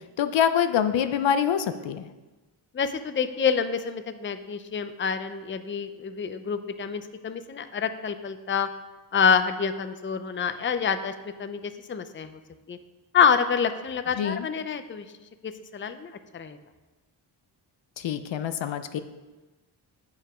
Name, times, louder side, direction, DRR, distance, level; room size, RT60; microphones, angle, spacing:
voice 1, 0.2-2.1 14.2-14.5 18.0-19.0, left 8 dB, 70° left, 10 dB, 0.6 m, -25 dB
voice 2, 2.7-8.7 9.1-12.4 12.7-12.8 13.1-15.0 15.4-16.6, left 6 dB, 25° left, 10 dB, 0.5 m, -27 dB
8.2 x 5.4 x 4.9 m, 1.2 s
cardioid pair, 60°, 47 cm